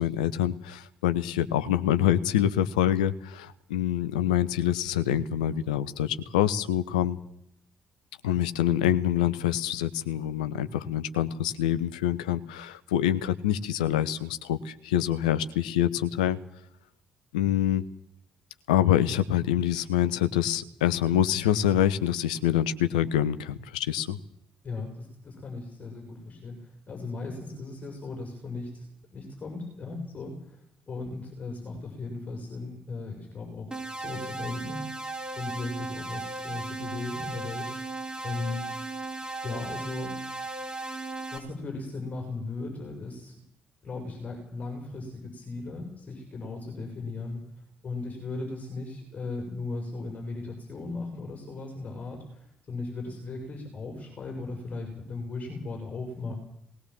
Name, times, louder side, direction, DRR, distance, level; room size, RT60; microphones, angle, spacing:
voice 1, 0.0-7.2 8.2-16.4 17.3-17.8 18.7-24.2, left 11 dB, 80° left, 12 dB, 1.0 m, -26 dB
voice 2, 24.6-28.8 29.1-34.8 35.4-37.7 38.2-38.7 39.4-40.2 41.3-43.3 43.8-47.4 47.8-56.3, left 3 dB, 40° left, 2 dB, 6.7 m, -37 dB
sound 1, 33.7-41.4, right 2 dB, 20° right, 5.0 m, -36 dB
19.5 x 19.0 x 7.7 m, 0.73 s
figure-of-eight pair, 45°, 4 cm